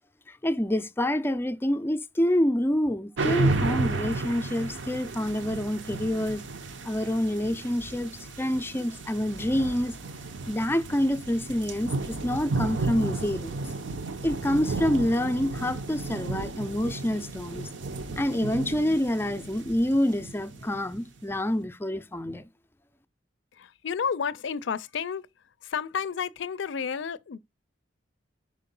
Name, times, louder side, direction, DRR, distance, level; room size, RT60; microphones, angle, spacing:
voice 1, 0.3-6.4 6.8-8.1 8.4-9.9 10.5-13.6 14.2-17.7 18.2-22.4, left 1 dB, 10° left, 0.4 m, -27 dB
sound 1, 3.2-21.0, right 3 dB, 80° right, 0.7 m, -33 dB
voice 2, 23.5-25.3 25.6-27.4, left 6 dB, 75° left, 0.4 m, -31 dB
5.0 x 4.6 x 5.4 m
head